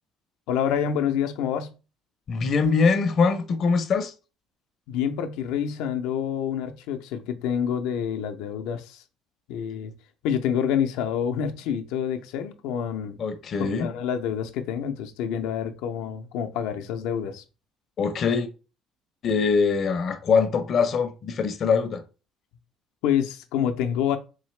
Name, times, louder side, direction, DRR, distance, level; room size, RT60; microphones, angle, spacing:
voice 1, 0.5-1.7 4.9-9.0 9.5-9.9 10.2-13.2 13.6-17.4 23.0-24.2, left 8 dB, 90° left, 0.5 m, -27 dB
voice 2, 2.3-4.1 13.2-13.9 18.0-18.5 19.2-22.0, left 5 dB, 45° left, 0.5 m, -23 dB
3.9 x 2.8 x 3.2 m
cardioid pair, 135°, 0 cm